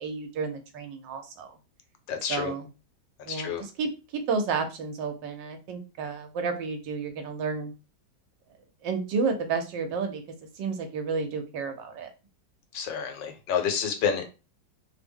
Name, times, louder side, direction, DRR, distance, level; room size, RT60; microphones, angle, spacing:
voice 1, 0.0-1.5 2.3-2.7 3.3-3.5 3.8-7.7 8.8-10.2 10.5-12.1, right 5 dB, 80° right, 6 dB, 1.3 m, -31 dB
voice 2, 2.1-2.5 3.3-3.6 12.7-14.3, left 7 dB, 90° left, 6 dB, 1.4 m, -29 dB
3.3 x 2.0 x 3.4 m, 0.30 s
omnidirectional pair, 2.0 m